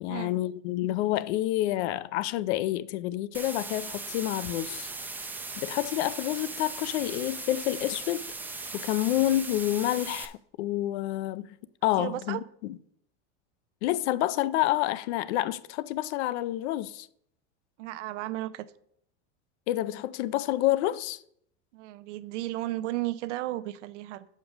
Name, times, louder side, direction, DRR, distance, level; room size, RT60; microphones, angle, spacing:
voice 1, 0.0-4.9 5.6-8.2 8.7-11.5 11.8-12.7 13.8-17.1 19.7-21.2, left 14 dB, 70° left, 0.5 m, -28 dB
sound 1, 3.3-10.3, right 3 dB, 5° right, 0.3 m, -38 dB
voice 2, 12.0-12.4 17.8-18.7 21.7-24.3, right 16 dB, 85° right, 0.6 m, -34 dB
6.0 x 5.3 x 6.5 m
supercardioid pair, 140°, 35 cm